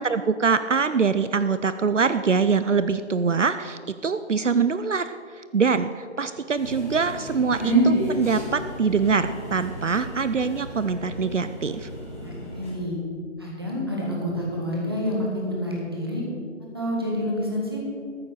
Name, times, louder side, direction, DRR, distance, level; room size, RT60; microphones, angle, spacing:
voice 1, 0.0-11.9, right 5 dB, 70° right, 12 dB, 0.6 m, -24 dB
sound 1, 6.6-12.7, right 1 dB, 10° left, 2.2 m, -29 dB
voice 2, 12.2-13.0 13.4-16.2 16.7-17.8, left 1 dB, 20° right, -3 dB, 1.8 m, -28 dB
13.5 x 7.9 x 6.7 m, 2.2 s
figure-of-eight pair, 175°, 37 cm